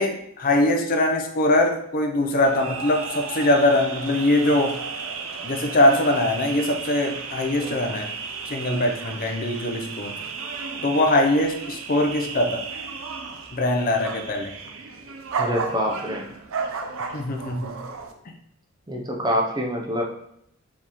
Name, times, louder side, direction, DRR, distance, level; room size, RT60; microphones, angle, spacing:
voice 1, 0.0-4.8 5.4-8.1 8.5-10.1 10.8-12.6 13.5-14.5 17.1-17.8, left 1 dB, 40° left, 3 dB, 0.5 m, -22 dB
sound 1, 2.4-18.1, right 5 dB, 65° right, 0.5 m, -34 dB
voice 2, 15.4-16.3 18.9-20.0, equal, 20° right, 1 dB, 0.6 m, -26 dB
4.5 x 3.5 x 3.0 m, 0.72 s
head